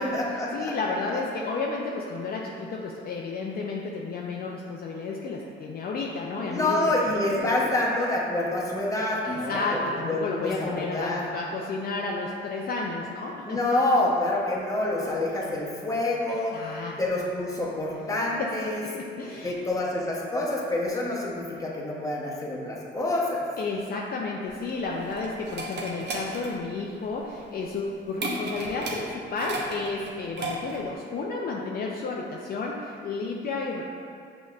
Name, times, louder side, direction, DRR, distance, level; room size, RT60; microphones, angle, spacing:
voice 1, 0.0-0.7 6.5-9.8 10.1-11.2 13.5-16.6 16.9-18.8 19.4-23.4, left 2 dB, 15° left, -4 dB, 0.8 m, -27 dB
voice 2, 0.5-7.7 9.2-13.8 16.3-17.0 18.4-19.6 23.6-33.8, left 3 dB, 50° left, -2 dB, 0.4 m, -32 dB
sound 1, 24.5-30.9, right 2 dB, 60° right, 0.7 m, -35 dB
6.3 x 2.9 x 2.4 m, 2.3 s
cardioid pair, 90°, 20 cm